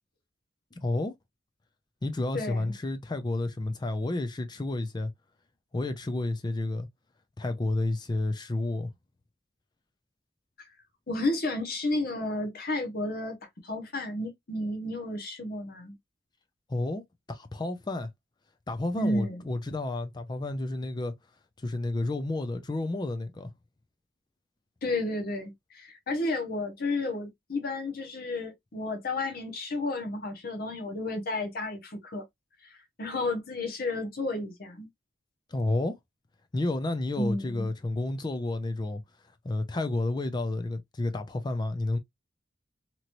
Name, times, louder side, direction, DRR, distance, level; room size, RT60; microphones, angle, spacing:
voice 1, 0.8-1.1 2.0-5.1 5.7-6.9 7.4-8.9 16.7-17.0 17.3-18.1 18.7-21.1 21.6-23.5 35.5-36.0 36.5-39.0 39.4-42.0, left 2 dB, 20° left, 0.4 m, -30 dB
voice 2, 2.3-2.7 10.6-10.7 11.1-13.4 13.6-16.0 18.9-19.5 24.8-32.2 32.6-34.9 37.2-37.7, left 2 dB, 50° left, 0.8 m, -32 dB
2.9 x 2.9 x 2.5 m
head